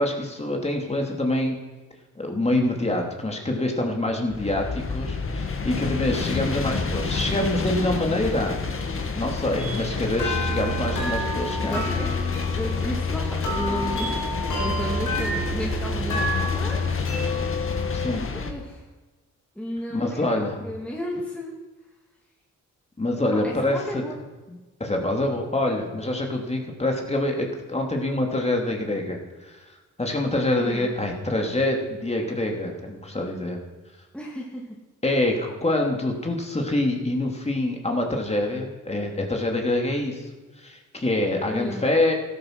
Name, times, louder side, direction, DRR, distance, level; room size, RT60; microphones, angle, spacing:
voice 1, 0.0-1.6 2.2-8.6 9.1-11.9 17.9-18.3 19.9-20.6 23.0-24.0 24.5-29.6 30.0-33.6 35.0-40.3 40.6-42.1, left 1 dB, 20° left, 1 dB, 3.1 m, -26 dB
sound 1, 4.3-18.5, left 4 dB, 40° left, 1.9 m, -30 dB
sound 2, 9.6-18.2, left 2 dB, 80° left, 5.3 m, -28 dB
voice 2, 11.6-12.3 12.5-17.1 18.3-18.8 19.6-21.5 23.1-24.1 30.6-30.9 34.1-34.7 41.5-41.9, equal, 5° left, -3 dB, 2.5 m, -33 dB
13.5 x 12.0 x 6.2 m, 1.2 s
cardioid pair, 80°, 31 cm